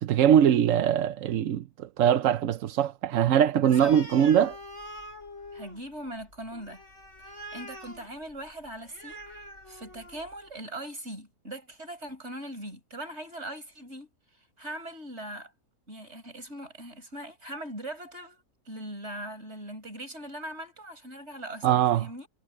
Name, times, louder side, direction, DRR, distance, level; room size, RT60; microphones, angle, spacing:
voice 1, 0.0-4.6 21.6-22.1, right 9 dB, 65° right, 1.0 m, -22 dB
Animal, 3.6-10.4, equal, 50° left, 8.1 m, -45 dB
voice 2, 3.6-3.9 5.5-6.8 7.2-14.1 14.6-15.5 15.9-22.3, right 1 dB, 45° right, 7.1 m, -40 dB
omnidirectional pair, 1.6 m